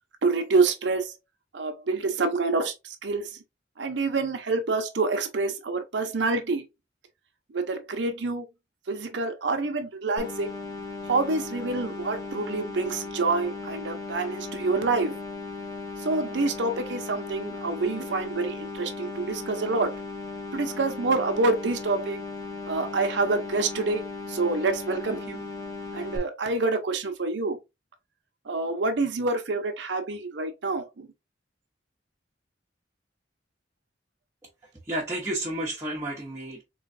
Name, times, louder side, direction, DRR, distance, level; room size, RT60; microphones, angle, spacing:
voice 1, 0.2-1.1 1.5-3.4 3.8-6.7 7.5-8.5 8.9-10.5 11.1-15.2 16.0-19.9 20.5-22.2 22.7-24.0 24.3-25.5 25.9-27.6 28.5-31.1, right 3 dB, 80° right, 0.6 m, -27 dB
sound 1, 10.2-26.2, left 3 dB, 20° left, 0.9 m, -37 dB
voice 2, 34.8-36.6, right 1 dB, 15° right, 0.9 m, -31 dB
3.9 x 3.1 x 2.5 m
head